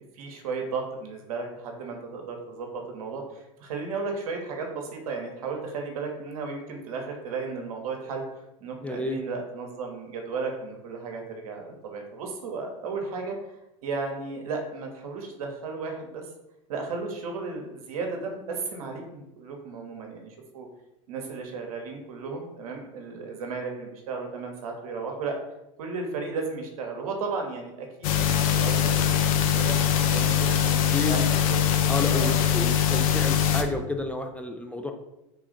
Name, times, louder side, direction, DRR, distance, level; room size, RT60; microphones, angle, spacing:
voice 1, 0.1-2.7 2.9-8.2 8.6-13.4 13.8-16.3 16.7-20.7 21.1-25.4 25.8-29.7 30.1-31.6 32.1-32.4, right 4 dB, 80° right, 2 dB, 0.8 m, -34 dB
voice 2, 8.8-9.2 30.7-31.3 31.9-34.9, left 2 dB, 5° left, 4 dB, 0.4 m, -31 dB
sound 1, 28.0-33.6, left 9 dB, 75° left, 0.5 m, -22 dB
3.5 x 2.4 x 3.8 m, 0.92 s
hypercardioid pair, 85°, 18 cm